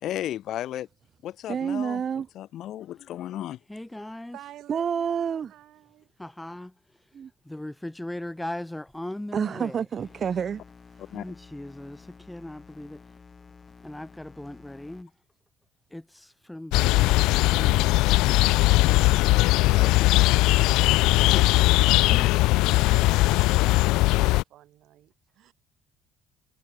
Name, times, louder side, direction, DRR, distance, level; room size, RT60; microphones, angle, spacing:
voice 1, 0.0-0.9 1.2-2.0 2.3-3.6 11.1-11.2 19.7-20.2 21.3-21.6, left 12 dB, 60° left, 1.1 m, -34 dB
voice 2, 1.5-2.3 4.7-5.5 7.1-7.3 9.3-10.6, right 7 dB, 40° right, 0.6 m, -28 dB
voice 3, 3.7-4.4 6.2-10.1 11.0-13.2 13.6-15.2 15.9-19.3, left 1 dB, 5° left, 6.3 m, -40 dB
voice 4, 4.3-6.1 22.9-25.5, right 13 dB, 65° right, 5.2 m, -49 dB
sound 1, 10.0-15.0, left 5 dB, 25° left, 4.1 m, -51 dB
sound 2, 16.7-24.4, left 20 dB, 80° left, 0.4 m, -20 dB
cardioid pair, 110°, 0 cm